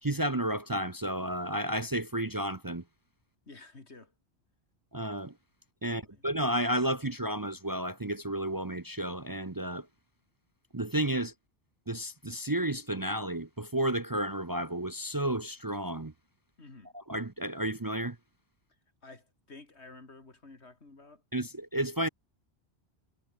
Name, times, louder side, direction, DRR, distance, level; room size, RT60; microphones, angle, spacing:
voice 1, 0.0-2.8 4.9-5.3 5.8-9.9 10.7-11.3 11.9-16.1 17.1-18.2 21.3-22.1, right 1 dB, 20° right, 0.8 m, -32 dB
voice 2, 3.5-4.1 5.9-6.3 16.6-16.9 19.0-21.2, left 3 dB, 80° left, 3.4 m, -52 dB
omnidirectional pair, 1.1 m